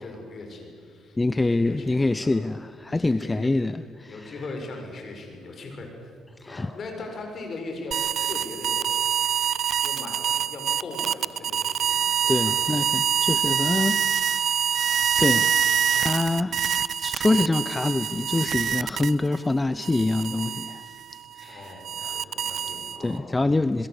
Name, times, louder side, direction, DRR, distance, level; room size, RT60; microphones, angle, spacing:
voice 1, 0.0-2.5 2.9-3.5 4.1-5.9 6.5-9.0 9.8-12.8 21.5-23.6, left 2 dB, 50° left, 7.1 m, -39 dB
voice 2, 1.2-4.4 6.4-6.7 12.3-16.7 17.0-20.9 21.3-22.2 23.0-23.9, left 2 dB, 20° left, 0.7 m, -26 dB
sound 1, 7.9-19.4 19.8-23.2, right 8 dB, 60° right, 0.7 m, -25 dB
27.0 x 22.0 x 8.5 m
cardioid pair, 90°, 0 cm